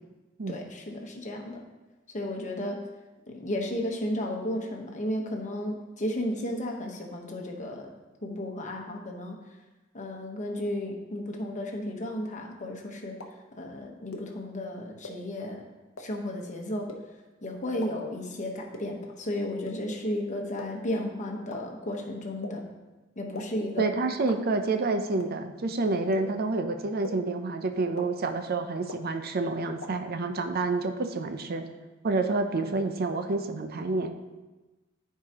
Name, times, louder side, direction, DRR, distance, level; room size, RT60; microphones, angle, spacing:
voice 1, 0.5-1.6 2.1-2.8 3.3-7.9 8.2-9.3 9.9-13.1 13.6-15.6 16.0-16.9 17.4-22.6 23.2-23.9, left 1 dB, 40° left, 1 dB, 1.1 m, -33 dB
sound 1, 13.2-13.3 14.1-14.2 15.0-15.1 16.0-16.1 16.9-17.0 17.8-17.9 18.7-18.8 19.7-19.8 20.6-20.7 21.5-21.6 22.4-22.5 23.3-23.4 24.3-24.4 25.2-25.3 26.1-26.2 27.0-27.1 28.0-28.1 28.9-29.0 29.8-29.9, left 2 dB, 85° left, 0.8 m, -38 dB
voice 2, 23.8-31.6 32.0-34.1, right 3 dB, 50° right, 7 dB, 0.6 m, -28 dB
13.5 x 4.7 x 2.9 m, 1.1 s
head